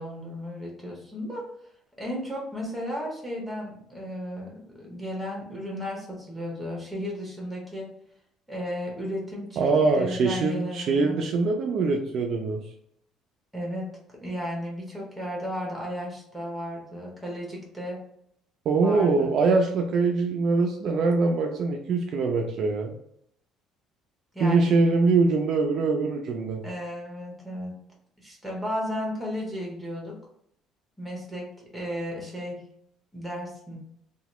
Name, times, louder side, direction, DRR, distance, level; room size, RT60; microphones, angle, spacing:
voice 1, 0.0-1.5 2.0-7.9 8.5-9.6 10.0-11.2 13.5-13.9 14.2-18.0 18.8-19.3 24.3-24.7 26.6-27.8 28.2-30.1 31.0-32.6 33.1-33.8, equal, ahead, -2 dB, 0.8 m, -34 dB
voice 2, 9.6-12.6 18.7-23.0 24.4-26.6, right 3 dB, 45° right, 2 dB, 0.3 m, -23 dB
2.8 x 2.2 x 3.0 m, 0.71 s
cardioid pair, 165°, 0 cm